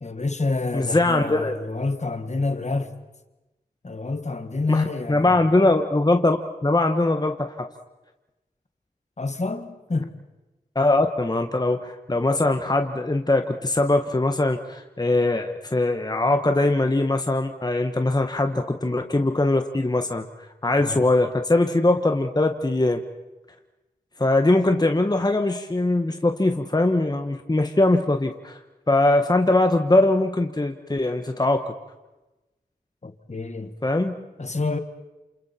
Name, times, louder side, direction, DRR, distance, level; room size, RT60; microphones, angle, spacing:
voice 1, 0.0-2.9 3.8-5.7 9.2-10.2 20.8-21.0 33.0-33.7 34.4-34.8, left 3 dB, 45° left, 1.7 m, -28 dB
voice 2, 0.7-1.5 4.7-6.4 6.6-7.7 10.7-20.3 20.6-23.0 24.2-28.6 28.9-31.7 33.8-34.2, left 2 dB, 25° left, 1.3 m, -21 dB
28.5 x 28.0 x 4.4 m
cardioid pair, 50°, 17 cm